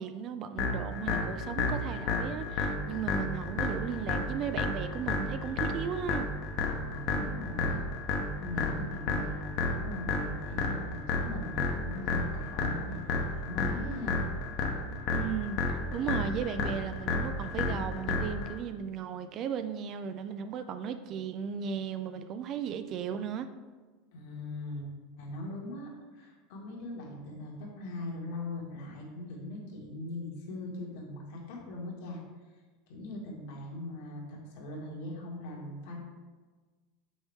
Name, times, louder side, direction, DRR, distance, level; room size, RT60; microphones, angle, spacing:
voice 1, 0.0-6.3 15.1-23.5, right 7 dB, 30° right, 10 dB, 0.3 m, -36 dB
sound 1, 0.6-18.6, left 3 dB, 40° left, 1.0 m, -32 dB
voice 2, 6.7-7.8 8.4-14.1 24.1-24.9 25.2-32.2 32.9-36.0, left 2 dB, 60° left, -2 dB, 2.0 m, -40 dB
6.6 x 6.2 x 3.6 m, 1.3 s
supercardioid pair, 175°, 0 cm